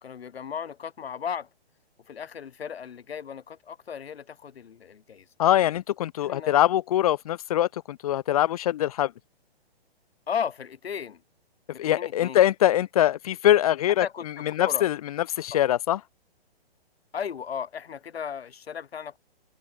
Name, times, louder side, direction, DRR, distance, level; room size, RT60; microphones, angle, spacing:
voice 1, 0.0-1.5 2.1-5.3 6.2-6.5 10.3-11.2 11.7-12.4 14.0-14.9 17.1-19.2, left 7 dB, 75° left, 3.5 m, -35 dB
voice 2, 5.4-9.1 11.8-14.1 14.5-16.0, left 12 dB, 35° left, 0.6 m, -23 dB
hypercardioid pair, 150°, 31 cm